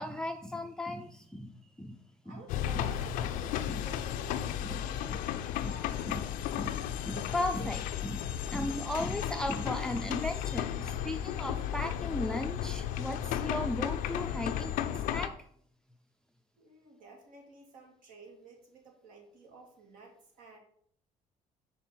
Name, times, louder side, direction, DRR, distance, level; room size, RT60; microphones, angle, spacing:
voice 1, 0.0-2.0 2.3-2.4 2.7-2.9 3.7-3.9 4.6-4.8 5.6-5.7 6.1-6.2 6.6-15.4, left 1 dB, 5° left, 6 dB, 0.4 m, -37 dB
voice 2, 2.2-3.1 3.6-5.3 5.7-6.5 16.6-20.6, right 3 dB, 75° right, 1 dB, 2.3 m, -53 dB
sound 1, 2.5-15.3, left 10 dB, 85° left, 0.5 m, -34 dB
5.9 x 4.1 x 6.1 m, 0.63 s
cardioid pair, 110°, 14 cm